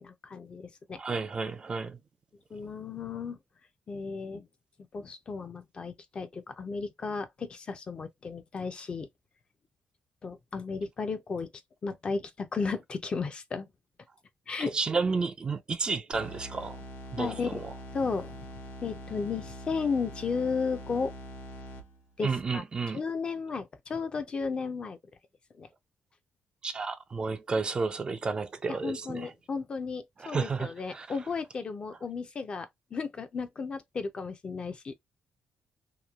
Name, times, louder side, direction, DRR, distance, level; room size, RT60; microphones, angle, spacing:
voice 1, 0.0-1.0 2.5-3.4 3.9-4.5 4.9-9.1 10.2-11.5 11.8-13.7 14.5-14.7 17.2-17.6 17.9-18.5 18.8-21.1 22.2-22.6 22.9-25.0 25.6-25.7 28.7-34.9, left 5 dB, 35° left, 0.5 m, -34 dB
voice 2, 1.0-2.0 14.6-16.8 17.1-17.6 22.2-23.0 26.6-29.3 30.2-31.1, right 4 dB, 30° right, 0.4 m, -31 dB
sound 1, 16.1-22.2, equal, 90° left, 0.8 m, -44 dB
3.0 x 2.3 x 2.3 m
cardioid pair, 145°, 3 cm